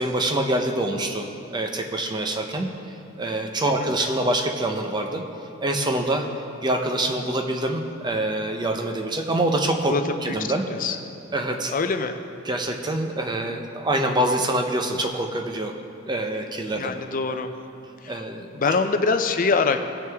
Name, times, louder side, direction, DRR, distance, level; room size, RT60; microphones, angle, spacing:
voice 1, 0.0-5.3 5.6-6.3 6.6-9.9 10.2-10.7 11.3-11.7 12.4-15.8 16.0-16.9 18.1-18.7, right 1 dB, 20° right, 3 dB, 0.7 m, -25 dB
voice 2, 11.7-12.2 16.8-17.5 18.0-18.2 18.5-19.8, left 4 dB, 40° left, 8 dB, 0.5 m, -24 dB
17.0 x 6.2 x 3.5 m, 2.6 s
head